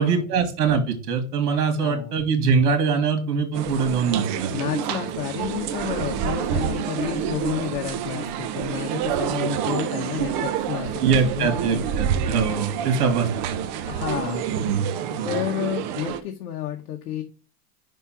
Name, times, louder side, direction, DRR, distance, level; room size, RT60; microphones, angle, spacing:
voice 1, 0.0-4.5 11.0-13.5 14.5-14.9 15.1-15.3, right 5 dB, 70° right, 6 dB, 2.0 m, -23 dB
voice 2, 1.8-2.2 4.5-11.5 13.9-14.6 15.2-17.2, left 11 dB, 70° left, 3 dB, 1.1 m, -31 dB
sound 1, 3.5-16.2, right 8 dB, 30° right, 0.5 m, -28 dB
5.6 x 3.7 x 5.7 m, 0.36 s
supercardioid pair, 160°, 47 cm